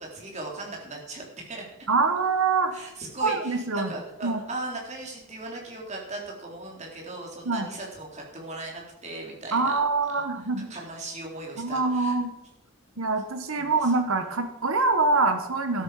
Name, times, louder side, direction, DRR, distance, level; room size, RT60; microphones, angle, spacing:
voice 1, 0.0-1.6 2.7-9.8 10.1-10.2 10.7-12.2 13.6-13.9 15.7-15.8, right 2 dB, 30° right, -1 dB, 3.7 m, -38 dB
voice 2, 1.9-2.7 3.2-3.9 4.2-4.4 7.4-7.7 9.5-10.7 11.6-12.3 13.0-15.8, right 3 dB, 75° right, 7 dB, 1.6 m, -25 dB
13.0 x 13.0 x 5.1 m, 0.90 s
head